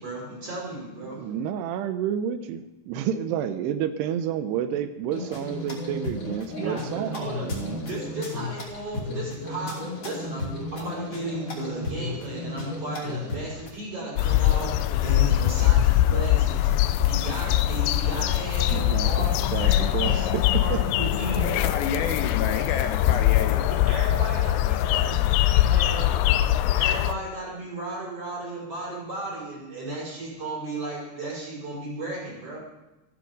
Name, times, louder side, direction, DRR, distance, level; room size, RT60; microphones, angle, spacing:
voice 1, 0.0-1.4 6.6-16.8 17.1-21.8 23.7-26.1 26.7-32.6, right 2 dB, 35° right, -5 dB, 6.3 m, -35 dB
voice 2, 1.1-7.8 18.7-20.8 25.1-25.3, right 9 dB, 85° right, 10 dB, 2.8 m, -30 dB
sound 1, 5.1-13.7, left 2 dB, 40° left, 3.6 m, -34 dB
sound 2, 14.2-27.2, left 13 dB, 90° left, 2.7 m, -22 dB
voice 3, 21.6-23.7, left 6 dB, 75° left, 5 dB, 2.6 m, -30 dB
14.5 x 14.0 x 5.3 m, 1.0 s
omnidirectional pair, 4.7 m